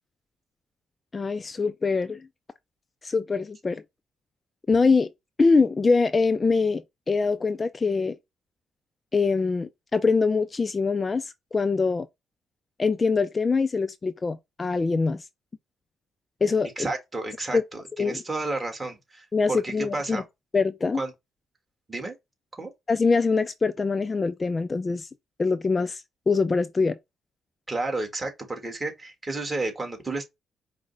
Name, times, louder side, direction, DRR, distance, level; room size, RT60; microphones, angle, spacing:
voice 1, 1.1-2.3 3.0-3.8 4.7-5.1 5.4-8.2 9.1-12.1 12.8-15.3 16.4-16.7 17.5-17.6 18.0-18.2 19.3-20.2 20.5-21.0 22.9-25.1 25.4-27.0, left 4 dB, 30° left, 0.3 m, -24 dB
voice 2, 16.8-20.2 20.9-21.1 21.9-22.1 22.6-22.7 27.7-30.2, right 2 dB, 20° right, 1.5 m, -31 dB
4.9 x 2.1 x 3.9 m
cardioid pair, 90°, 0 cm